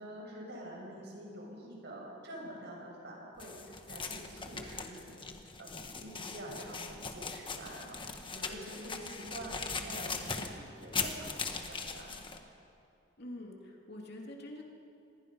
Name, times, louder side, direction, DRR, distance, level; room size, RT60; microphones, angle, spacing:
voice 1, 0.0-12.2, right 1 dB, 65° right, -2 dB, 7.0 m, -47 dB
sound 1, 3.4-12.4, left 4 dB, 25° left, 1.4 m, -40 dB
voice 2, 13.2-14.6, left 1 dB, 60° left, 0 dB, 2.9 m, -45 dB
26.5 x 20.5 x 5.6 m, 2.5 s
head